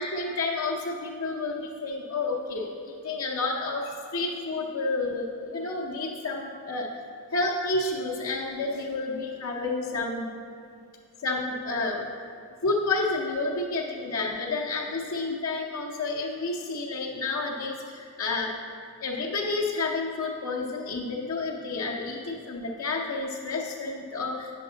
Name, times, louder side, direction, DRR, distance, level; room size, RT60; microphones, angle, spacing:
voice 1, 0.0-6.9 7.3-10.3 11.2-12.1 12.6-18.6 19.0-24.5, left 3 dB, 85° left, -6 dB, 0.8 m, -30 dB
8.8 x 6.7 x 3.9 m, 2.3 s
head